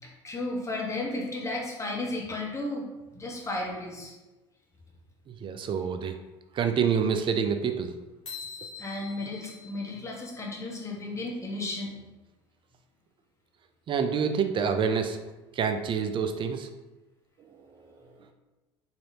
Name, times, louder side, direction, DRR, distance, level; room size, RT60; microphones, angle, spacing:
voice 1, 0.0-2.9 3.1-4.1 8.8-11.9, left 2 dB, 20° left, -2 dB, 1.2 m, -34 dB
voice 2, 5.4-6.1 6.5-7.9 13.9-15.2 15.5-16.7 17.4-18.0, right 6 dB, 35° right, 7 dB, 0.5 m, -27 dB
sound 1, 8.3-10.9, left 5 dB, 85° left, 1.0 m, -44 dB
4.2 x 3.1 x 2.8 m, 1.1 s
hypercardioid pair, 65°, 14 cm